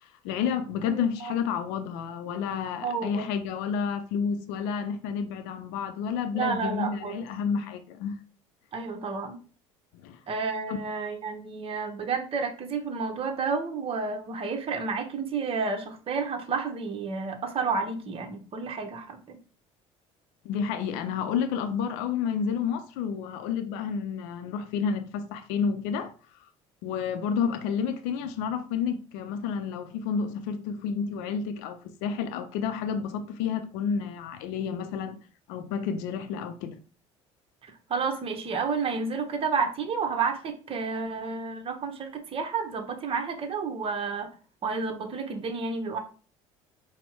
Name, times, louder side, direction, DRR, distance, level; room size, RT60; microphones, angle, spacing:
voice 1, 0.0-8.2 9.9-10.2 10.7-10.8 20.4-26.1 26.8-35.2 35.5-36.8, left 6 dB, 75° left, 0.5 m, -30 dB
voice 2, 0.9-1.3 2.8-3.3 6.3-7.3 8.7-9.4 10.3-19.4 37.9-44.3 44.6-46.0, right 5 dB, 35° right, 0.9 m, -31 dB
4.2 x 2.1 x 4.5 m
hypercardioid pair, 70°, 16 cm